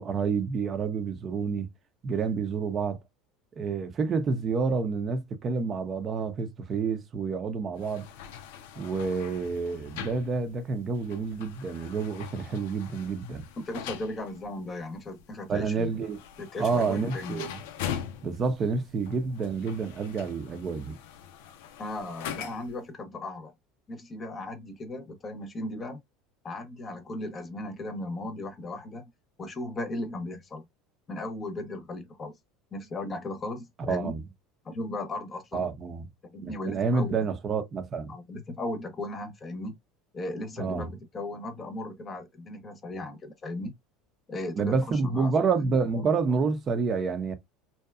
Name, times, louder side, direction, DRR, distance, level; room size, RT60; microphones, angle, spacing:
voice 1, 0.0-1.7 2.0-3.0 3.6-8.0 8.8-13.4 15.5-16.2 16.6-17.5 18.2-21.0 33.9-34.2 35.5-36.0 36.4-38.1 40.6-40.9 44.6-47.3, right 4 dB, 40° right, 0.6 m, -28 dB
sound 1, 7.8-22.8, left 9 dB, 75° left, 0.4 m, -42 dB
voice 2, 13.6-16.1 16.4-17.5 21.8-23.5 23.9-26.0 26.4-29.1 29.4-30.6 31.1-32.4 32.7-34.1 34.6-35.7 36.2-37.2 38.1-39.8 40.1-43.7 44.3-46.0, left 2 dB, 30° left, 0.8 m, -37 dB
2.7 x 2.2 x 2.3 m
hypercardioid pair, 80°, 0 cm